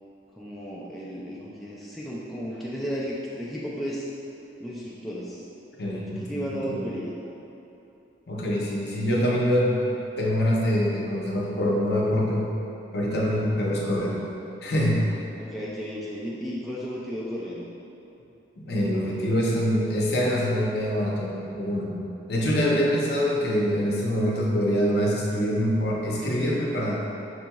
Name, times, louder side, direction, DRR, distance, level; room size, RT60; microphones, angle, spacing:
voice 1, 0.4-4.1 4.6-5.4 6.2-7.1 15.4-17.7 22.7-22.8, equal, ahead, -7 dB, 0.3 m, -34 dB
voice 2, 5.8-6.8 8.3-9.8 10.2-12.5 12.9-14.2 14.6-15.1 18.6-21.9 22.3-27.0, equal, 60° left, -4 dB, 0.6 m, -25 dB
6.0 x 2.9 x 2.3 m, 2.9 s
head